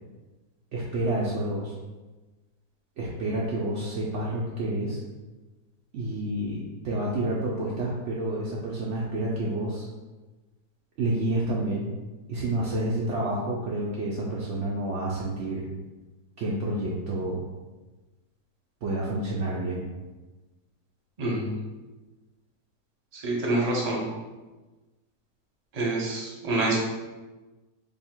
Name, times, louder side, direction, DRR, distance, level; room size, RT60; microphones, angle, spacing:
voice 1, 0.7-1.7 3.0-5.0 5.9-9.9 11.0-11.9 12.3-15.7 16.4-17.4 18.8-19.9, right 1 dB, 80° right, -5 dB, 0.6 m, -29 dB
voice 2, 21.2-21.6 23.1-24.0 25.7-26.8, right 2 dB, 35° right, -4 dB, 0.6 m, -27 dB
2.8 x 2.7 x 4.3 m, 1.2 s
omnidirectional pair, 1.8 m